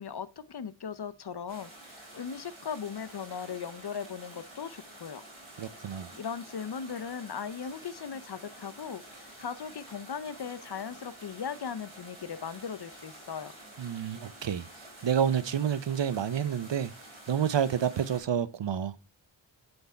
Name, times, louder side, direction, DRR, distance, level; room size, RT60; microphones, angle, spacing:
voice 1, 0.0-5.2 5.9-13.5, left 7 dB, 55° left, 0.6 m, -38 dB
sound 1, 1.5-18.2, right 1 dB, 90° right, 3.8 m, -50 dB
voice 2, 5.6-6.1 13.8-14.7 15.0-16.9 17.3-18.9, right 8 dB, 65° right, 0.6 m, -29 dB
7.9 x 3.5 x 4.3 m
wide cardioid pair, 55°, 47 cm